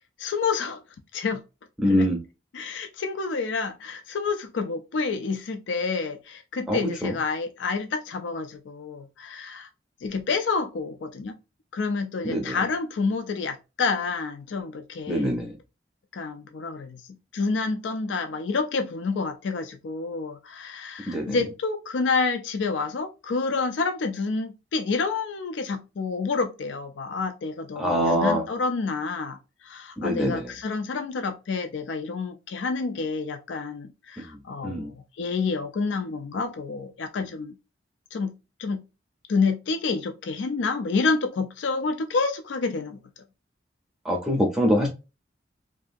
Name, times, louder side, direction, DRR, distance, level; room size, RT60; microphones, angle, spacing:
voice 1, 0.2-0.8 1.1-1.4 1.8-2.1 2.5-9.7 10.0-11.3 11.7-15.3 16.1-17.0 17.3-37.6 38.1-38.3 38.6-38.8 39.3-43.0, left 4 dB, 80° left, 0.4 m, -28 dB
voice 2, 1.8-2.2 6.7-7.1 12.2-12.6 15.1-15.5 21.1-21.4 27.8-28.4 30.0-30.5 34.6-34.9 44.0-44.9, equal, 5° right, 0.6 m, -24 dB
2.7 x 2.4 x 2.4 m
head